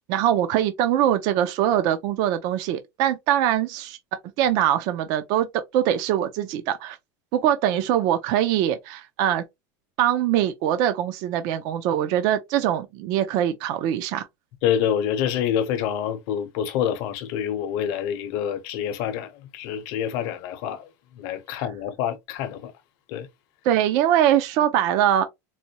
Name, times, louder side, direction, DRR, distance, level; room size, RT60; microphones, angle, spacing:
voice 1, 0.1-4.0 4.4-7.0 7.3-9.4 10.0-14.3 23.6-25.3, right 11 dB, 50° right, 0.5 m, -22 dB
voice 2, 14.6-20.9 21.2-22.7 23.1-23.3, left 9 dB, 55° left, 0.7 m, -27 dB
4.1 x 2.2 x 2.8 m
cardioid pair, 175°, 9 cm